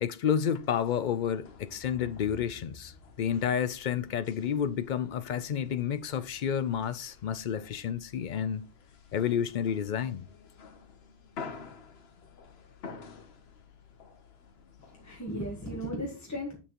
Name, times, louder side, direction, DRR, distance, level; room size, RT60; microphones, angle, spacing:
voice 1, 0.0-8.7 9.1-10.3, left 8 dB, 55° left, 0.6 m, -30 dB
sound 1, 0.6-15.9, left 5 dB, 80° left, 1.2 m, -50 dB
voice 2, 14.8-16.6, equal, 15° left, 1.3 m, -36 dB
7.3 x 6.7 x 2.9 m
omnidirectional pair, 1.0 m